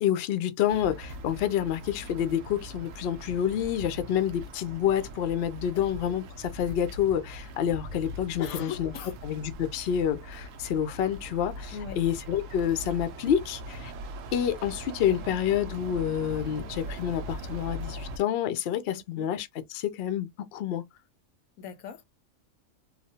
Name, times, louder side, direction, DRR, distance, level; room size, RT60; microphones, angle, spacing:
voice 1, 0.0-8.9 9.2-13.9 14.3-20.8, left 9 dB, 65° left, 0.6 m, -28 dB
sound 1, 0.7-18.2, equal, 70° right, 0.9 m, -41 dB
voice 2, 8.4-9.1 11.7-12.0 18.9-19.3 21.6-22.1, left 8 dB, 85° left, 1.0 m, -39 dB
3.0 x 2.1 x 2.7 m
omnidirectional pair, 1.5 m